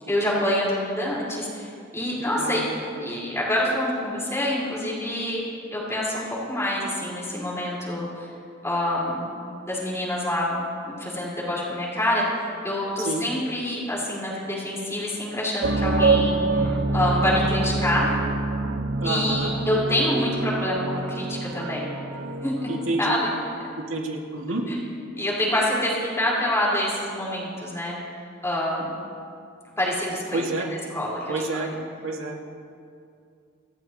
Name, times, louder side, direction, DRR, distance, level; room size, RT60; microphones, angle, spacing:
voice 1, 0.1-2.6 3.0-5.4 5.7-6.2 6.5-8.3 8.6-9.3 9.7-10.6 10.9-12.2 12.6-18.1 19.0-21.9 22.4-22.7 23.0-23.3 24.7-24.8 25.2-28.0 28.4-28.9 29.8-30.5 30.9-31.7, left 1 dB, 15° left, -6 dB, 5.1 m, -26 dB
voice 2, 2.4-2.7 2.9-3.1 13.0-13.2 19.0-19.5 22.7-23.2 23.8-24.6 30.3-30.7 31.3-31.7 32.0-32.4, right 2 dB, 90° right, 0 dB, 2.3 m, -29 dB
sound 1, 15.6-23.0, right 3 dB, 70° right, 0.9 m, -26 dB
28.0 x 14.0 x 3.2 m, 2.4 s
head